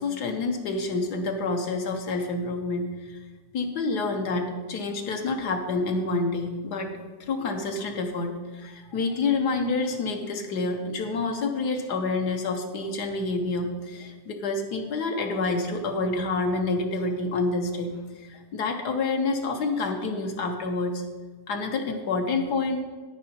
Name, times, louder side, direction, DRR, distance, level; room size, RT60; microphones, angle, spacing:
voice 1, 0.0-3.2 3.5-6.9 7.3-21.0 21.5-22.8, left 3 dB, 70° left, 4 dB, 1.5 m, -28 dB
9.5 x 9.3 x 4.3 m, 1.4 s
omnidirectional pair, 1.9 m